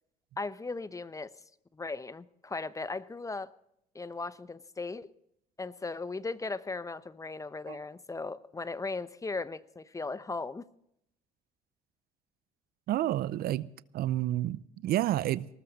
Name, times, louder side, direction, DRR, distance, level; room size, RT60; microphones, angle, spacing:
voice 1, 0.4-1.3 1.7-3.5 3.9-5.1 5.6-10.7, left 3 dB, 20° left, 0.8 m, -37 dB
voice 2, 12.9-15.5, right 13 dB, 65° right, 0.6 m, -30 dB
19.5 x 13.5 x 4.1 m
supercardioid pair, 75°, 17 cm